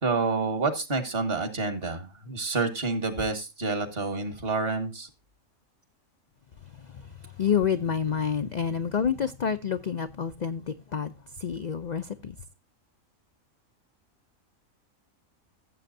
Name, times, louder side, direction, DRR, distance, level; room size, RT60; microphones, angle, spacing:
voice 1, 0.0-5.1, right 3 dB, 45° right, 1.8 m, -28 dB
voice 2, 6.7-12.4, left 7 dB, 55° left, 0.5 m, -29 dB
14.5 x 7.8 x 2.6 m
omnidirectional pair, 1.4 m